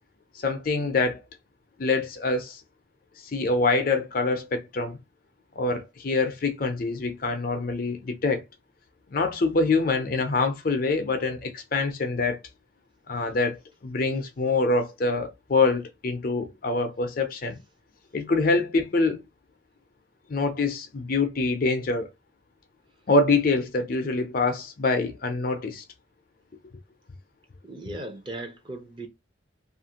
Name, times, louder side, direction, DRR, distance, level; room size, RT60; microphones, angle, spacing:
voice 1, 0.4-1.2 1.8-2.6 3.3-5.0 5.6-8.4 9.1-12.4 13.1-17.6 18.1-19.2 20.3-22.1 23.1-25.8, left 3 dB, 45° left, 0.5 m, -25 dB
voice 2, 27.6-29.1, right 1 dB, 25° right, 0.6 m, -37 dB
2.8 x 2.5 x 2.8 m
head